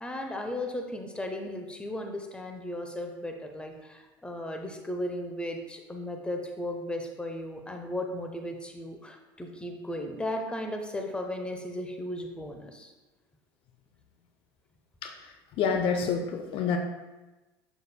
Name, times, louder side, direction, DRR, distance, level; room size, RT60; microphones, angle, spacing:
voice 1, 0.0-12.9, left 1 dB, 10° left, 3 dB, 0.8 m, -36 dB
voice 2, 15.0-16.8, left 6 dB, 50° left, 5 dB, 0.6 m, -28 dB
6.9 x 6.5 x 2.2 m, 1.1 s
hypercardioid pair, 75°, 12 cm